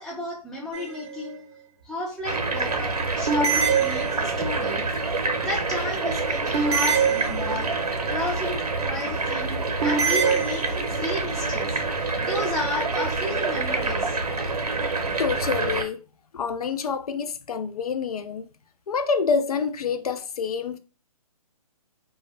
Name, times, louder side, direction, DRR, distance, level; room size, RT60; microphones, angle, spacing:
voice 1, 0.0-1.4 1.8-4.9 5.4-7.7 8.1-11.8 12.2-14.2, left 2 dB, 5° left, 0.5 m, -32 dB
sound 1, 0.7-1.3 3.3-4.6 6.5-7.9 9.8-11.1, right 6 dB, 45° right, 0.5 m, -25 dB
sound 2, 2.2-15.8, right 3 dB, 80° right, 0.7 m, -27 dB
voice 2, 15.2-16.0 16.3-18.5 18.9-20.8, left 5 dB, 75° left, 0.4 m, -27 dB
2.2 x 2.1 x 3.3 m
figure-of-eight pair, 135°, 19 cm